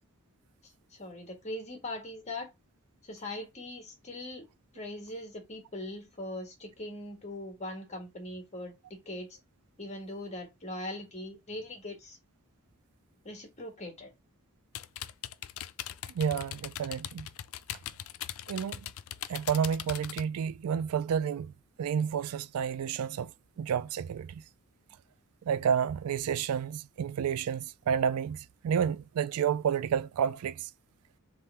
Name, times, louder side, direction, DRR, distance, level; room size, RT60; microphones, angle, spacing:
voice 1, 0.6-2.5 3.0-4.5 4.7-9.4 9.8-12.2 13.2-14.1, left 1 dB, 30° left, 1.7 m, -41 dB
sound 1, 14.7-20.2, left 11 dB, 65° left, 0.4 m, -40 dB
voice 2, 16.1-17.3 18.5-18.8 19.3-21.5 21.8-23.3 23.6-24.4 25.5-28.4 28.6-30.7, right 7 dB, 85° right, 0.4 m, -30 dB
3.7 x 3.2 x 4.2 m
head